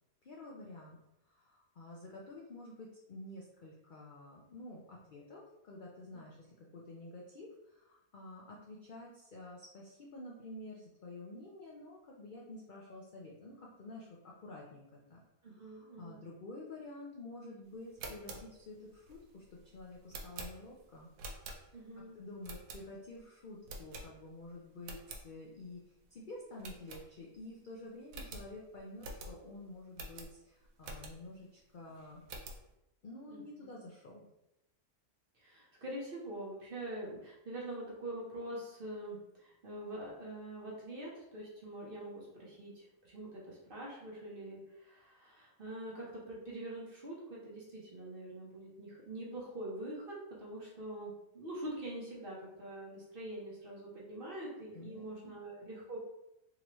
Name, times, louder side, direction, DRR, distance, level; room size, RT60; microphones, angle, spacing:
voice 1, 0.2-1.0 1.3-15.2 15.5-21.1 21.6-32.2 33.0-34.2 54.7-55.3, left 2 dB, 75° left, -3 dB, 0.4 m, -50 dB
voice 2, 15.4-16.2 21.7-22.2 33.3-33.7 35.3-56.0, right 1 dB, 40° right, -5 dB, 1.0 m, -44 dB
sound 1, 17.8-22.0 22.4-23.2 23.6-24.4 24.7-25.2 25.7-25.8 26.0-26.2 26.6-27.5 27.7-27.8 28.1-31.4 31.8-32.7, right 2 dB, 80° right, 1.2 m, -48 dB
3.8 x 3.0 x 3.0 m, 0.87 s
omnidirectional pair, 1.6 m